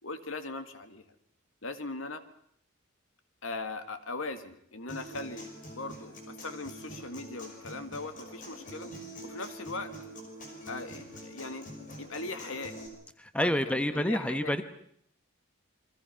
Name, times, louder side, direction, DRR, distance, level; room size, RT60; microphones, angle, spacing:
voice 1, 0.0-1.0 1.6-2.2 3.4-8.9 9.2-9.9 10.7-11.7 12.0-12.8 13.4-14.5, left 3 dB, 70° left, 9 dB, 2.0 m, -39 dB
Human voice / Acoustic guitar, 4.9-12.9, equal, 40° left, 5.6 m, -45 dB
voice 2, 13.2-14.6, left 1 dB, 5° left, 10 dB, 1.0 m, -28 dB
28.5 x 22.5 x 5.8 m, 0.67 s
head